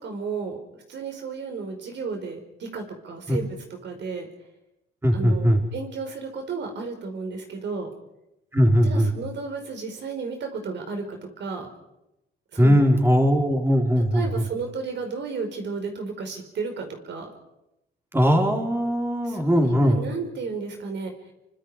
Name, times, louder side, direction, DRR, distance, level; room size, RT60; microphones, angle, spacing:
voice 1, 0.0-4.3 5.1-7.9 8.8-11.7 12.5-12.9 14.0-17.3 19.2-21.1, right 4 dB, 65° right, 4 dB, 4.9 m, -33 dB
voice 2, 5.0-5.6 8.5-9.1 12.6-14.4 18.1-20.0, equal, 10° right, 1 dB, 4.3 m, -20 dB
27.5 x 24.5 x 5.0 m, 0.89 s
cardioid pair, 90°, 20 cm